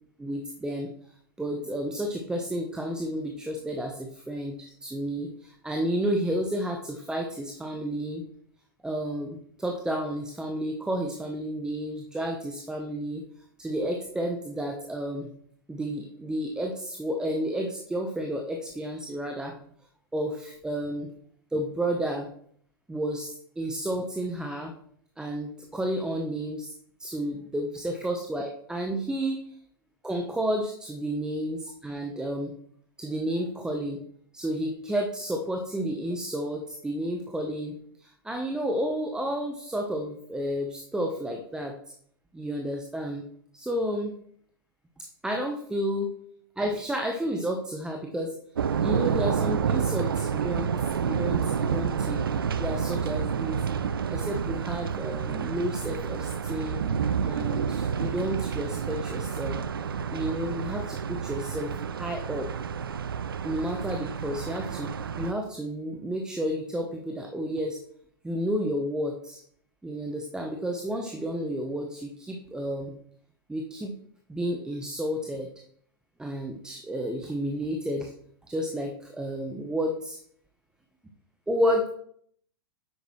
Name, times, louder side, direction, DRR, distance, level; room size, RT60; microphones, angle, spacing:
voice 1, 0.2-0.9 1.4-8.2 8.8-13.2 13.6-15.3 15.7-19.6 20.1-21.1 21.5-22.3 22.9-24.7 25.2-26.7 27.0-29.4 30.0-32.5 33.0-34.0 34.3-41.7 42.3-43.2 43.5-44.1 45.0-46.1 46.6-48.3 48.8-50.7 51.0-52.2 52.5-53.6 54.1-56.8 57.2-59.6 60.1-62.5 63.4-64.9 65.2-67.8 68.2-69.4 69.8-72.9 73.5-73.9 74.3-75.5 76.2-78.1 78.5-80.2 81.5-81.9, equal, 5° right, 2 dB, 0.9 m, -31 dB
sound 1, 48.6-65.3, right 7 dB, 70° right, 0.6 m, -29 dB
10.0 x 8.1 x 3.2 m, 0.64 s
figure-of-eight pair, 105°, 12 cm